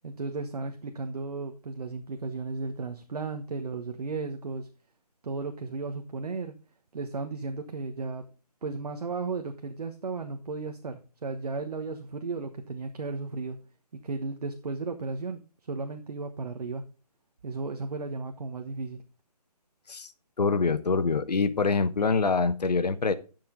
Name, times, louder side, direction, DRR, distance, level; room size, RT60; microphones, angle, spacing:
voice 1, 0.0-4.7 5.2-6.5 6.9-8.2 8.6-13.6 14.0-15.4 15.7-16.8 17.4-19.0, right 4 dB, 70° right, 1.3 m, -34 dB
voice 2, 20.4-23.1, left 4 dB, 80° left, 1.1 m, -25 dB
11.5 x 6.9 x 3.8 m
figure-of-eight pair, 155°, 21 cm